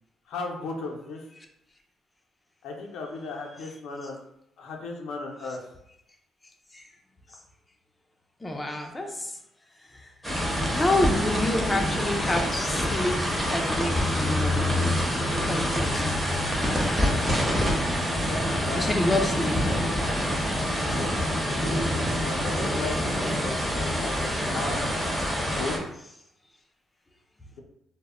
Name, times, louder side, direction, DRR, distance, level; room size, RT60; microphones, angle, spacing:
voice 1, 0.3-1.2 2.6-4.2 4.6-5.6 18.0-19.3 19.6-20.3 20.9-21.1 22.2-24.8 25.4-25.8, left 3 dB, 85° left, 0 dB, 0.4 m, -37 dB
voice 2, 8.4-9.3 9.9-10.1 10.7-14.8 15.3-16.0 18.8-19.6, left 1 dB, 15° left, 2 dB, 0.4 m, -28 dB
sound 1, 10.2-25.8, equal, 5° right, 0.8 m, -26 dB
2.0 x 2.0 x 3.5 m, 0.80 s
cardioid pair, 90°, 0 cm